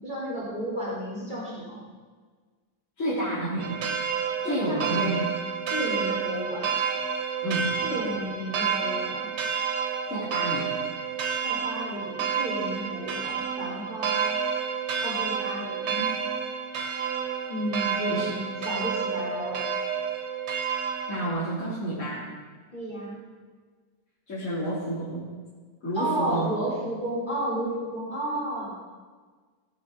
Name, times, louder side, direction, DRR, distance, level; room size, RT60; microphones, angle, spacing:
voice 1, 0.0-1.8 4.4-5.2 5.7-6.7 7.8-9.3 11.4-14.2 15.0-16.0 17.5-18.4 18.6-19.6 22.7-23.2 25.9-28.7, right 1 dB, 25° left, -6 dB, 4.0 m, -32 dB
voice 2, 3.0-3.8 4.4-5.3 7.4-7.8 10.1-10.7 15.9-16.0 18.1-18.3 21.1-22.3 24.3-25.3 25.8-26.5, right 1 dB, 45° left, -11 dB, 3.7 m, -30 dB
sound 1, 3.6-21.3, right 6 dB, 75° right, 1.7 m, -30 dB
16.0 x 11.0 x 3.9 m, 1.5 s
omnidirectional pair, 1.9 m